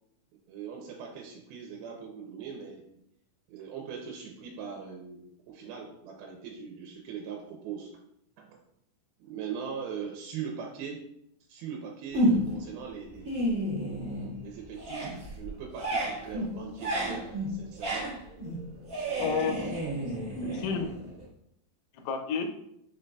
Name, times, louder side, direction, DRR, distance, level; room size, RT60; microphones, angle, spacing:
voice 1, 0.5-2.8 3.5-7.9 8.4-8.6 9.2-11.0 11.5-13.4 14.4-18.2 18.9-19.6, right 7 dB, 85° right, 1 dB, 2.4 m, -41 dB
sound 1, 12.1-12.7 13.1-14.4 14.7-21.2, equal, 50° right, 0.9 m, -31 dB
voice 2, 19.2-19.7 20.2-21.2 21.9-22.5, left 6 dB, 85° left, 5 dB, 2.5 m, -32 dB
5.4 x 3.9 x 2.2 m, 0.76 s
omnidirectional pair, 4.3 m